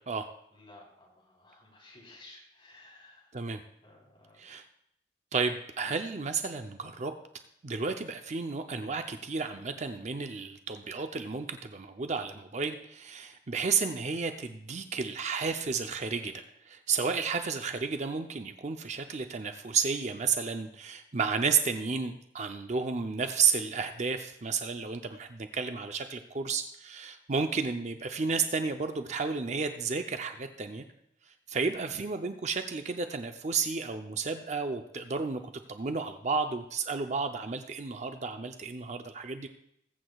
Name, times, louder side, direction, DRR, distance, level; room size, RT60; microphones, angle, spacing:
voice 1, 0.5-3.3 3.8-4.4 17.1-17.3, left 2 dB, 30° left, -4 dB, 3.7 m, -55 dB
voice 2, 5.3-7.1 7.6-30.8 31.5-35.4 35.7-39.5, right 5 dB, 40° right, 7 dB, 0.6 m, -32 dB
21.0 x 8.1 x 2.4 m, 0.75 s
head